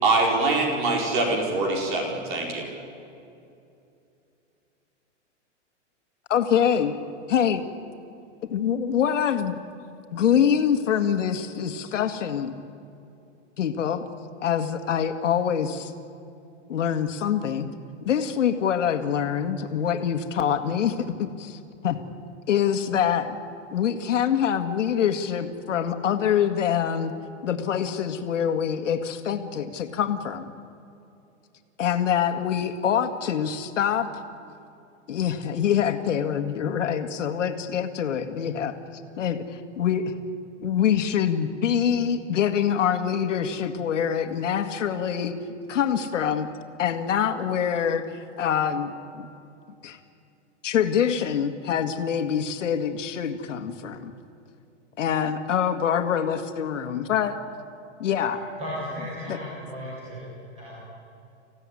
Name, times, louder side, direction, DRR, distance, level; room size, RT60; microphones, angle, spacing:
voice 1, 0.0-2.7, right 2 dB, 40° right, 1 dB, 4.8 m, -24 dB
voice 2, 6.3-7.0 7.3-7.6 8.5-9.6 10.1-12.6 13.6-14.0 14.4-15.9 16.7-17.7 18.0-22.0 22.5-23.4 23.7-27.1 27.4-30.5 31.8-34.1 35.1-38.8 39.2-40.1 40.6-45.3 45.7-46.5 46.8-49.3 49.8-50.0 50.6-54.1 55.0-57.4 58.0-58.4 59.3-59.4, left 8 dB, 80° left, 6 dB, 1.9 m, -25 dB
voice 3, 58.6-60.2 60.5-60.8, equal, 15° right, -7 dB, 6.5 m, -35 dB
25.5 x 16.0 x 9.8 m, 2.7 s
supercardioid pair, 175°, 37 cm